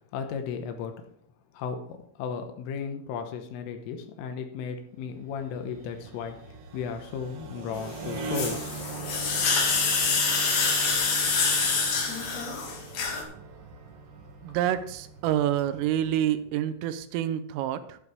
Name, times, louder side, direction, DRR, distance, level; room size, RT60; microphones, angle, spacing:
voice 1, 0.1-0.9 1.5-6.4 6.7-8.7, left 6 dB, 80° left, 6 dB, 3.7 m, -35 dB
sound 1, 5.0-16.6, right 4 dB, 60° right, 2.5 m, -40 dB
sound 2, 7.8-13.2, left 5 dB, 65° left, 4.3 m, -26 dB
voice 2, 14.4-18.0, right 11 dB, 85° right, 11 dB, 3.2 m, -27 dB
12.0 x 12.0 x 3.3 m, 0.66 s
omnidirectional pair, 5.8 m